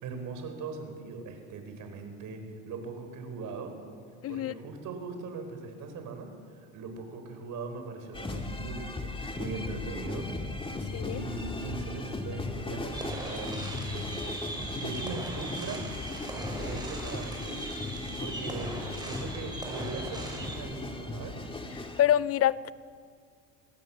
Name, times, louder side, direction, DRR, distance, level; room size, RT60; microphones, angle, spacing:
voice 1, 0.0-3.8 4.3-6.3 6.7-9.1 9.4-10.3 10.7-10.8 11.1-15.8 16.3-17.7 18.2-21.4, right 3 dB, 55° right, 5 dB, 5.1 m, -40 dB
voice 2, 4.2-4.5 10.9-11.2 22.0-22.7, left 11 dB, 40° left, 19 dB, 0.5 m, -25 dB
sound 1, 8.1-22.0, left 2 dB, 15° left, 2.1 m, -37 dB
sound 2, 12.9-20.6, right 2 dB, 10° right, 5.8 m, -40 dB
25.0 x 17.5 x 7.3 m, 2.1 s
supercardioid pair, 105°, 37 cm